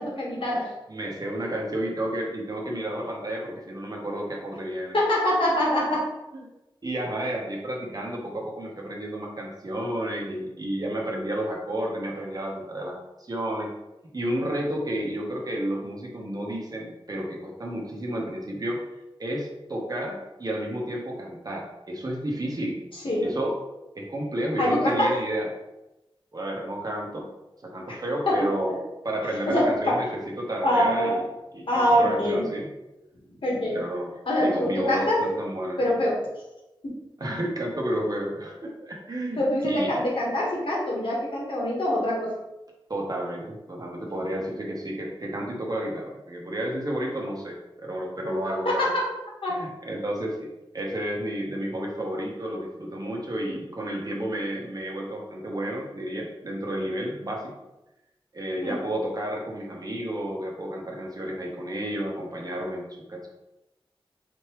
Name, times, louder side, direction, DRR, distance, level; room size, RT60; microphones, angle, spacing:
voice 1, 0.0-0.7 4.9-6.1 23.0-23.3 24.6-25.2 27.9-28.0 28.3-28.5 29.5-30.0 30.6-31.2 31.7-32.5 33.4-33.8 34.3-35.4 35.8-36.2 36.8-36.9 39.4-42.3 48.6-48.9 49.4-49.6 58.6-58.8, left 1 dB, 65° left, -4 dB, 1.4 m, -24 dB
voice 2, 0.9-5.0 6.3-6.4 6.8-13.8 14.1-18.8 19.2-22.8 23.2-23.6 23.9-25.5 26.3-27.3 27.6-28.8 29.0-31.3 31.5-32.7 33.7-35.8 37.2-40.0 42.9-48.9 49.5-57.5 58.3-63.3, right 1 dB, 45° right, -1 dB, 0.9 m, -31 dB
4.3 x 3.3 x 3.0 m, 0.97 s
wide cardioid pair, 90°, 9 cm